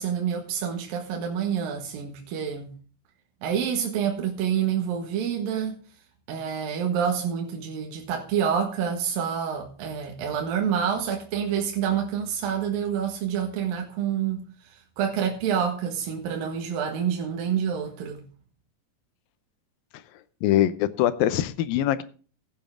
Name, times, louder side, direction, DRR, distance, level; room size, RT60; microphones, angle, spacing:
voice 1, 0.0-2.7 3.4-5.8 6.3-18.2, right 8 dB, 75° right, 3.3 m, -28 dB
voice 2, 20.4-22.0, left 12 dB, 85° left, 2.6 m, -23 dB
15.5 x 9.3 x 3.7 m
omnidirectional pair, 4.2 m